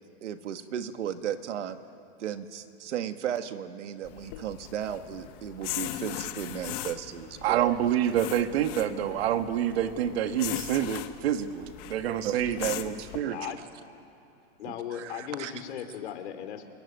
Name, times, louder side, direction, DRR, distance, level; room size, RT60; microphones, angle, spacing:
voice 1, 0.2-1.8 2.2-7.7 12.2-12.4 13.4-13.5 14.7-15.5, right 9 dB, 90° right, 8 dB, 1.9 m, -35 dB
sound 1, 4.0-13.2, left 13 dB, 35° left, 1.1 m, -39 dB
voice 2, 7.4-13.5, right 10 dB, 60° right, 8 dB, 1.8 m, -27 dB
voice 3, 13.2-13.6 14.6-16.7, left 10 dB, 70° left, 8 dB, 3.2 m, -37 dB
27.0 x 23.0 x 9.5 m, 2.6 s
supercardioid pair, 165°, 35 cm